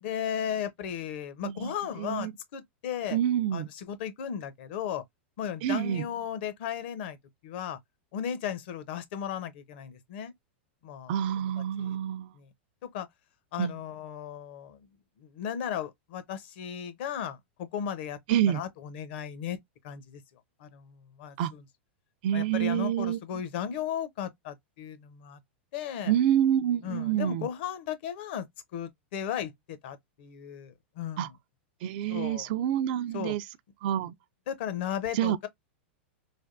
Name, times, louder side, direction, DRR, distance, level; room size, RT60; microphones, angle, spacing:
voice 1, 0.0-3.2 3.5-5.0 5.4-7.2 7.4-7.8 8.1-10.3 10.8-11.1 11.4-11.5 11.8-12.0 12.3-12.5 12.8-13.1 13.5-14.9 15.2-18.2 18.5-19.6 19.8-20.2 20.6-21.6 22.3-25.4 25.7-26.1 26.8-28.5 28.7-31.3 32.1-32.5 33.1-33.3 34.5-35.5, left 9 dB, 60° left, 0.7 m, -35 dB
voice 2, 2.0-2.3 3.1-3.7 5.6-6.1 11.1-12.3 13.6-13.7 18.3-18.6 21.4-21.5 22.2-23.2 26.1-27.5 31.2-31.3 31.8-33.4 33.8-34.1 35.1-35.4, right 10 dB, 55° right, 0.3 m, -27 dB
3.3 x 2.2 x 2.4 m
hypercardioid pair, 125°, 6 cm